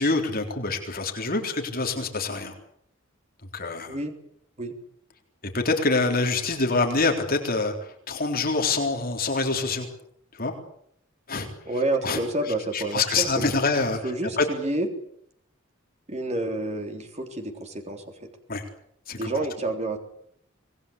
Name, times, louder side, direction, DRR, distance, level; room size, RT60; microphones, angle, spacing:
voice 1, 0.0-2.6 3.5-4.0 5.5-9.9 10.3-10.5 11.3-11.5 12.0-14.5 18.5-18.6 19.1-19.5, left 3 dB, 45° left, 3 dB, 3.8 m, -26 dB
voice 2, 11.7-13.4 14.0-14.9 16.1-18.3 19.2-20.0, right 2 dB, 35° right, 4 dB, 3.5 m, -29 dB
25.5 x 19.5 x 8.6 m, 0.70 s
head